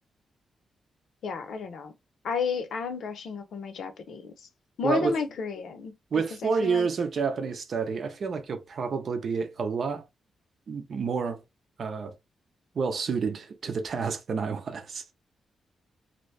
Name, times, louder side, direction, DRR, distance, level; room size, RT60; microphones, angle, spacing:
voice 1, 1.2-1.9 2.2-4.3 4.8-5.9 6.4-6.9, left 5 dB, 70° left, 0.7 m, -32 dB
voice 2, 4.8-5.2 6.1-10.0 10.7-11.4 11.8-12.1 12.7-15.1, right 5 dB, 55° right, 0.6 m, -29 dB
2.9 x 2.6 x 3.2 m
wide cardioid pair, 130°, 0 cm